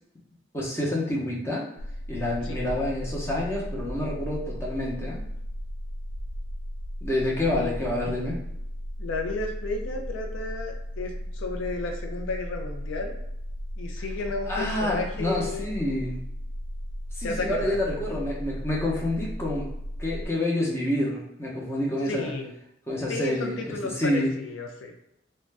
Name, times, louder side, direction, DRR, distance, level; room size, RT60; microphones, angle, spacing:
voice 1, 0.5-1.7 2.1-5.2 7.0-8.3 14.5-16.2 17.1-19.6 20.0-22.3 22.9-24.3, left 1 dB, 15° left, -5 dB, 0.6 m, -28 dB
sound 1, 1.8-20.3, equal, 75° right, 0.4 m, -35 dB
voice 2, 9.0-13.1 13.8-15.7 17.2-17.8 22.1-22.5 23.1-24.9, left 3 dB, 80° left, 2 dB, 0.4 m, -33 dB
2.4 x 2.1 x 3.2 m, 0.80 s
head